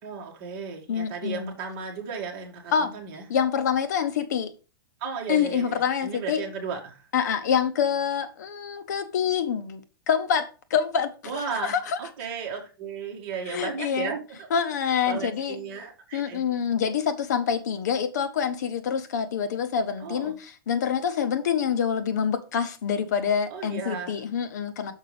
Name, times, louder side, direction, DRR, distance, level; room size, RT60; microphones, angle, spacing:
voice 1, 0.0-3.2 5.0-7.1 11.2-14.5 14.8-16.4 20.0-20.4 23.5-24.2, right 6 dB, 30° right, 1.7 m, -35 dB
voice 2, 0.9-1.5 2.7-2.9 3.3-4.5 5.3-6.4 7.1-9.8 10.1-12.0 13.5-14.1 14.5-15.6 16.1-24.9, left 7 dB, 50° left, 0.7 m, -26 dB
6.4 x 5.1 x 4.8 m
supercardioid pair, 180°, 12 cm